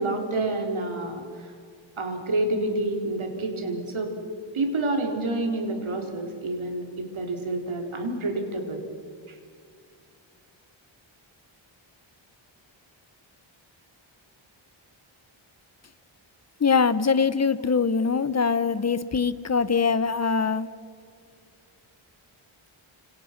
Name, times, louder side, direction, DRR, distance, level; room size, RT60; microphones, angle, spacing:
voice 1, 0.0-1.5 2.0-4.1 4.5-8.8 9.3-9.4, right 2 dB, 75° right, 3 dB, 4.2 m, -28 dB
voice 2, 16.6-20.7, left 5 dB, 30° left, 14 dB, 1.0 m, -23 dB
29.5 x 27.5 x 6.0 m, 2.3 s
wide cardioid pair, 115°, 49 cm